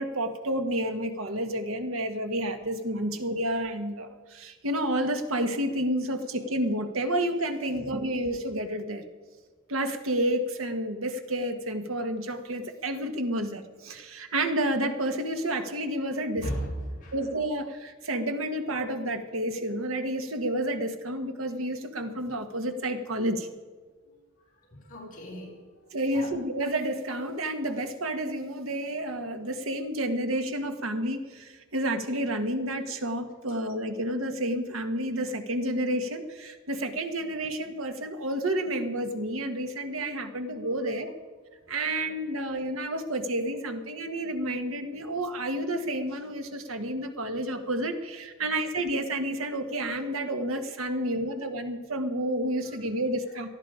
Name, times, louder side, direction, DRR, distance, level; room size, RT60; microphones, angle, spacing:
voice 1, 0.0-9.0 9.7-16.5 17.1-23.5 25.9-41.1 41.7-53.5, right 1 dB, 85° right, 7 dB, 1.6 m, -30 dB
voice 2, 16.4-17.1 24.7-25.5 26.1-26.3 41.9-42.0, equal, 40° left, -4 dB, 5.2 m, -35 dB
19.0 x 13.0 x 5.0 m, 1.4 s
head